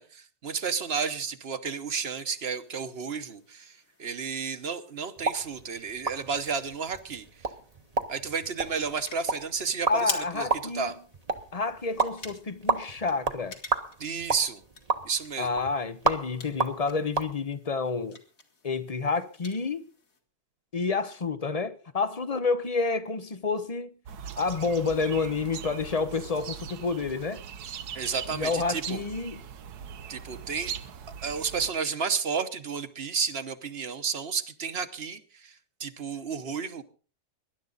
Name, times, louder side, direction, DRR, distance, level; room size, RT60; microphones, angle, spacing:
voice 1, 0.0-7.3 8.1-10.5 10.7-11.0 14.0-14.6 15.0-15.5 27.9-29.0 30.1-30.7 31.2-35.5 35.8-36.8, right 5 dB, 45° right, 1.2 m, -32 dB
sound 1, 1.8-20.2, left 4 dB, 60° left, 2.4 m, -47 dB
sound 2, 5.2-17.3, right 4 dB, 30° right, 0.9 m, -33 dB
voice 2, 9.9-10.9 11.5-13.6 15.4-18.2 18.6-19.8 20.7-23.9 24.4-27.4 28.3-29.4, left 4 dB, 35° left, 0.6 m, -29 dB
sound 3, 24.1-31.7, right 8 dB, 85° right, 1.4 m, -41 dB
23.0 x 11.0 x 4.0 m
omnidirectional pair, 1.6 m